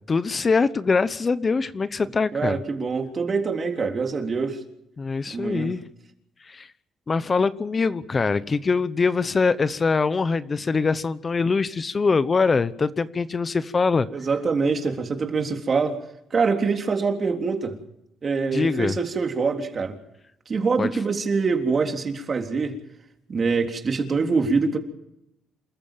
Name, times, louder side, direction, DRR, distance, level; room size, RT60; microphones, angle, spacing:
voice 1, 0.1-2.6 5.0-5.8 6.4-6.7 7.1-14.1 18.5-19.0 20.8-20.9, left 4 dB, 35° left, 14 dB, 0.9 m, -23 dB
voice 2, 2.3-4.6 5.3-5.8 14.1-16.0 16.3-17.8 18.2-19.9 20.5-22.8 23.3-24.8, right 4 dB, 40° right, 4 dB, 3.6 m, -24 dB
27.5 x 14.5 x 7.5 m, 0.81 s
cardioid pair, 90°, 0 cm